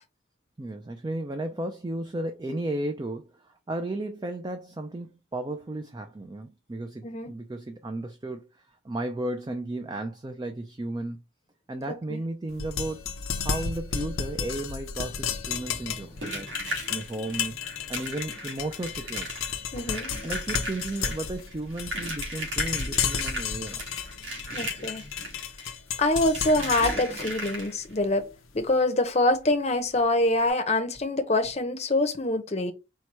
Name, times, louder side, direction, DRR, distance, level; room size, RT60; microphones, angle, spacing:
voice 1, 0.6-3.3 3.7-8.5 8.8-11.2 11.7-13.0 13.4-16.5 16.9-17.6 17.9-19.3 20.2-23.8, right 1 dB, 20° right, 0.4 m, -34 dB
sound 1, 12.5-28.6, left 6 dB, 80° left, 0.6 m, -33 dB
sound 2, 15.5-28.0 29.5-29.6 29.9-30.0 30.4-30.5, equal, 65° right, 1.8 m, -37 dB
voice 2, 19.7-20.1 24.5-25.0 26.0-28.3 28.5-32.7, left 2 dB, 30° left, 0.7 m, -25 dB
4.6 x 2.2 x 4.2 m
head